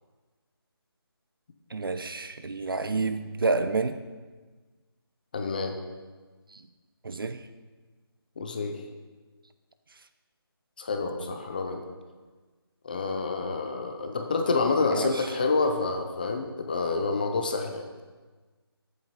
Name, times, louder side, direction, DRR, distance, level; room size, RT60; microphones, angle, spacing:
voice 1, 1.7-4.0 6.5-6.6 7.0-7.4 11.0-11.3 14.9-15.3, right 3 dB, 60° right, 11 dB, 0.8 m, -29 dB
voice 2, 5.3-5.8 8.4-8.8 10.8-11.8 12.8-17.9, left 3 dB, 20° left, 5 dB, 0.6 m, -28 dB
14.0 x 8.0 x 4.2 m, 1.4 s
figure-of-eight pair, 165°, 13 cm